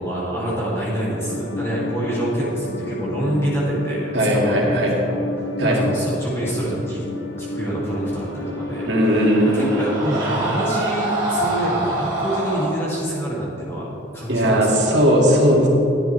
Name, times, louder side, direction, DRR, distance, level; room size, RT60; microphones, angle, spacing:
voice 1, 0.0-7.0 7.4-8.9 9.5-13.9 14.1-14.8, right 1 dB, 15° left, -8 dB, 2.6 m, -26 dB
sound 1, 1.1-9.3, left 2 dB, 60° left, 0.7 m, -31 dB
voice 2, 4.1-4.9 5.6-5.8 8.9-9.8 14.3-15.7, equal, 65° right, -2 dB, 2.2 m, -17 dB
Screaming, 8.3-12.7, right 1 dB, 20° right, 2.2 m, -26 dB
14.0 x 10.5 x 3.4 m, 3.0 s
head